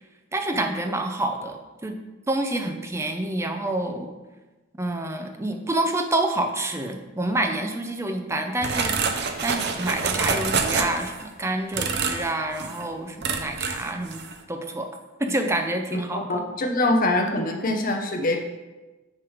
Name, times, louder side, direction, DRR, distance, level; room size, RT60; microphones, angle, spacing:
voice 1, 0.3-2.0 2.3-4.1 4.8-9.1 9.4-14.2 14.5-14.9 15.2-16.4, right 1 dB, 15° right, 5 dB, 0.5 m, -28 dB
sound 1, 8.6-11.2 11.7-12.3 12.6-12.8 13.2-13.9 14.1-14.4, right 5 dB, 55° right, 0.6 m, -26 dB
voice 2, 15.9-18.4, left 2 dB, 40° left, 2 dB, 0.8 m, -24 dB
9.1 x 3.2 x 4.9 m, 1.2 s
head